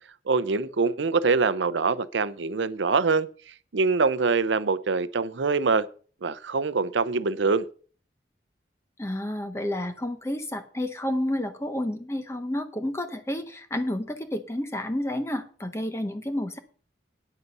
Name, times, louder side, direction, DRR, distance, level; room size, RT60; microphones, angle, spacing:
voice 1, 0.3-3.3 3.7-5.9 6.2-7.6, right 4 dB, 80° right, 0.6 m, -24 dB
voice 2, 9.0-16.6, left 1 dB, 15° left, 0.8 m, -30 dB
9.4 x 8.0 x 5.4 m
head